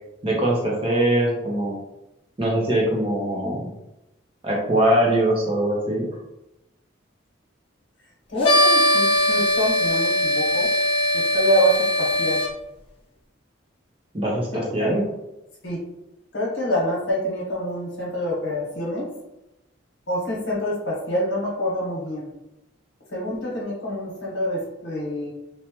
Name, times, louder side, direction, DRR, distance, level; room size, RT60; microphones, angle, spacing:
voice 1, 0.2-1.8 2.4-3.7 4.4-6.1 14.1-15.0, right 1 dB, 25° right, -3 dB, 0.6 m, -22 dB
voice 2, 8.3-10.7 11.1-12.4 14.5-15.1 15.6-15.8 16.3-19.1 20.1-22.3 23.1-25.3, equal, 60° left, -3 dB, 1.0 m, -26 dB
sound 1, 8.4-12.5, left 1 dB, 30° left, 0.5 m, -20 dB
3.2 x 2.1 x 2.8 m, 0.92 s
head